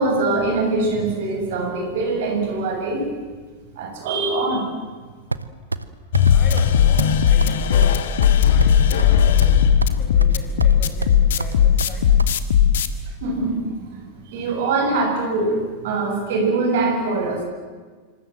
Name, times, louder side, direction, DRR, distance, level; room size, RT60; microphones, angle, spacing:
voice 1, 0.0-3.1 3.8-4.7 13.2-17.4, right 3 dB, 55° right, 3 dB, 7.1 m, -23 dB
sound 1, 5.3-5.9 6.1-6.3 6.6-6.7 7.0-7.1 7.4-7.5 7.8-9.1 9.4-10.0 10.2-10.8 11.0-12.3, right 3 dB, 80° right, 0.9 m, -27 dB
sound 2, 6.1-12.9, left 9 dB, 60° left, 1.7 m, -16 dB
voice 2, 6.3-8.0 8.4-9.7 10.0-12.1, left 3 dB, 25° left, 2 dB, 7.9 m, -36 dB
26.5 x 25.5 x 7.7 m, 1.4 s
figure-of-eight pair, 90°, 0 cm